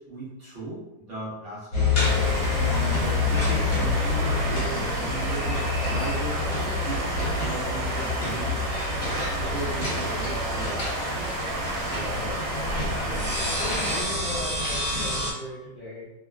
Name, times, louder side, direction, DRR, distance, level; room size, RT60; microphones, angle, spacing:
voice 1, 0.1-2.1 2.5-8.6 9.4-10.9, right 1 dB, 55° right, -8 dB, 0.8 m, -37 dB
sound 1, 1.7-15.3, left 3 dB, 55° left, 1.2 m, -27 dB
sound 2, 1.9-14.0, right 1 dB, 75° right, 1.3 m, -32 dB
voice 2, 11.9-13.4 13.7-16.1, equal, 80° left, -10 dB, 0.4 m, -39 dB
3.0 x 2.3 x 2.3 m, 0.97 s
omnidirectional pair, 2.0 m